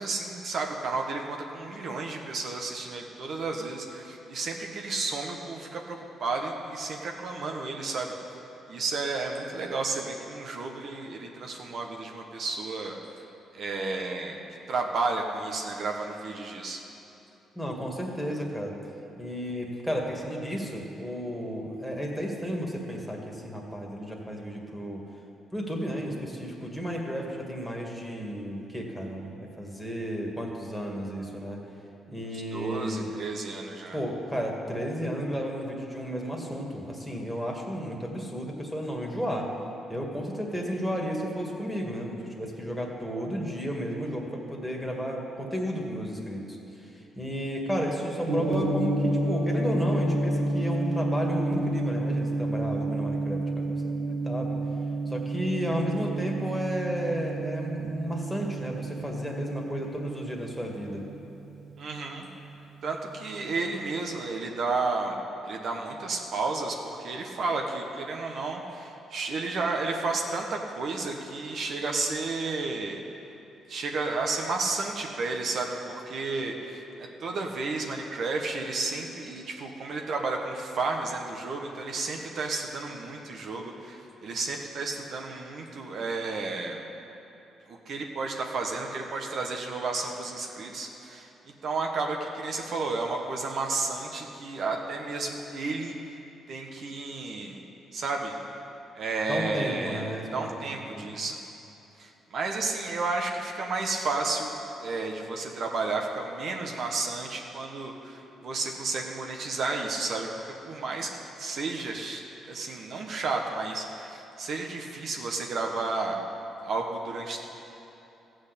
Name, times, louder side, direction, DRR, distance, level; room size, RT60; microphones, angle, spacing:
voice 1, 0.0-8.1 8.7-13.0 13.5-14.4 14.7-16.8 32.5-34.0 61.8-62.3 62.8-65.1 65.4-73.0 73.7-76.8 77.2-86.8 87.7-91.3 91.6-95.9 96.5-97.6 97.9-98.3 98.9-101.4 102.0-104.5 104.8-111.1 111.4-116.2 116.6-117.5, right 3 dB, 60° right, 1 dB, 1.2 m, -32 dB
voice 2, 17.6-18.8 19.2-25.0 25.5-31.6 32.1-33.1 33.9-39.5 39.9-54.6 55.1-61.1 99.3-100.6 100.9-101.1, equal, ahead, 0 dB, 2.1 m, -33 dB
Gong, 48.3-62.4, right 1 dB, 85° right, 1.9 m, -30 dB
14.5 x 6.3 x 8.4 m, 3.0 s
cardioid pair, 90°, 0 cm